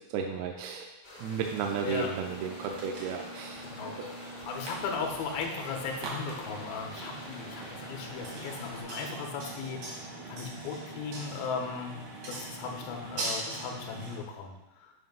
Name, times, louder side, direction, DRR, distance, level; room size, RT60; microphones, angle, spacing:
voice 1, 0.1-0.9 1.2-3.7 4.0-4.1, right 6 dB, 85° right, 2 dB, 2.5 m, -34 dB
sound 1, 1.0-8.8, left 1 dB, 55° left, 0.8 m, -47 dB
sound 2, 1.5-14.2, right 2 dB, 65° right, 1.5 m, -41 dB
voice 2, 4.4-12.0 12.3-14.5, left 5 dB, 75° left, 2 dB, 2.5 m, -37 dB
7.9 x 2.8 x 5.3 m, 1.0 s
omnidirectional pair, 4.6 m